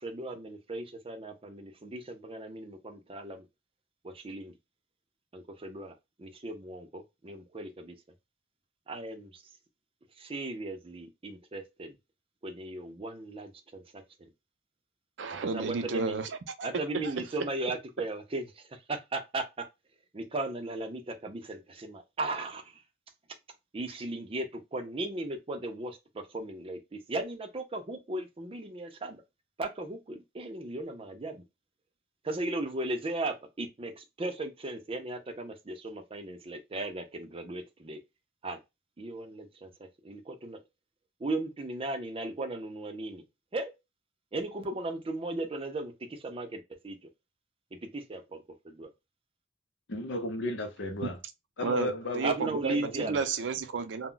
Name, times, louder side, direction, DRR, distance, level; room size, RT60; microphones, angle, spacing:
voice 1, 0.0-3.4 4.0-4.5 5.3-5.9 6.2-7.9 8.9-9.4 10.2-11.9 12.4-13.8 15.5-16.2 16.6-18.4 18.9-19.4 20.1-22.6 23.7-26.0 26.3-29.2 29.6-31.4 32.2-38.0 38.4-38.6 39.0-39.7 40.0-40.6 41.2-43.2 43.5-43.7 44.3-47.0 47.7-48.4 48.6-48.9 52.2-53.1, right 2 dB, 30° right, 0.5 m, -36 dB
voice 2, 15.2-16.7 16.9-17.3 51.0-51.1 51.6-54.1, right 5 dB, 90° right, 0.5 m, -32 dB
voice 3, 49.9-51.2 51.6-53.2, left 1 dB, 80° left, 0.7 m, -34 dB
2.2 x 2.1 x 3.7 m
head